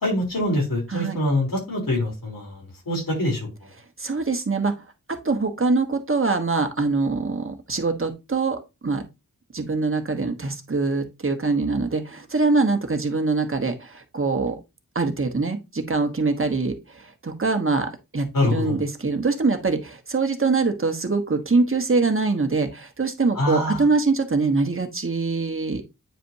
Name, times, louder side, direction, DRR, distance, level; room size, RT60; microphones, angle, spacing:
voice 1, 0.0-3.5 18.3-18.8 23.3-23.9, left 1 dB, 80° left, -1 dB, 3.7 m, -24 dB
voice 2, 4.0-4.7 5.1-9.0 9.5-14.6 14.9-25.9, right 3 dB, 40° right, 6 dB, 1.3 m, -23 dB
9.0 x 5.1 x 2.8 m, 0.24 s
wide cardioid pair, 70°, 34 cm